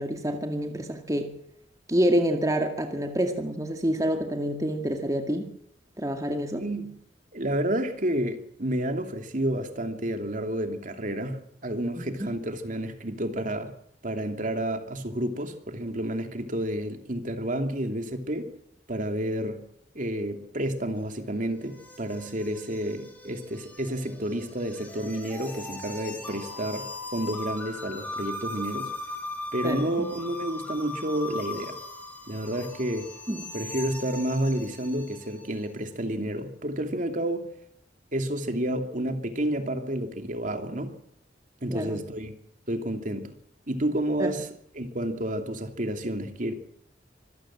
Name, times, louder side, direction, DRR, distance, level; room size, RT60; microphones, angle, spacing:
voice 1, 0.0-1.3 1.9-5.5 6.0-6.6 12.0-12.1 29.6-30.1 33.3-33.4 41.7-42.0 44.2-44.3, equal, 20° right, 2.1 m, -27 dB
voice 2, 6.5-7.0 7.3-13.7 14.0-18.5 18.9-19.6 19.9-28.9 29.5-31.8 32.3-33.1 33.5-37.6 38.1-41.0 41.6-42.3 42.7-43.4 43.7-44.5 44.7-46.5, right 1 dB, 50° right, 2.8 m, -30 dB
sound 1, 21.0-35.6, left 2 dB, 10° left, 5.1 m, -39 dB
25.5 x 16.5 x 7.5 m
head